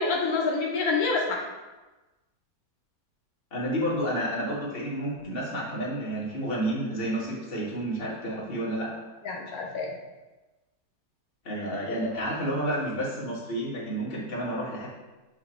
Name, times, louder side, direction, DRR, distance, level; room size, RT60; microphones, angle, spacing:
voice 1, 0.0-1.4 9.2-9.9, left 3 dB, 70° left, -1 dB, 1.2 m, -27 dB
voice 2, 3.5-8.9 11.4-14.9, right 1 dB, 40° left, -6 dB, 1.7 m, -30 dB
7.9 x 2.9 x 4.3 m, 1.1 s
omnidirectional pair, 1.6 m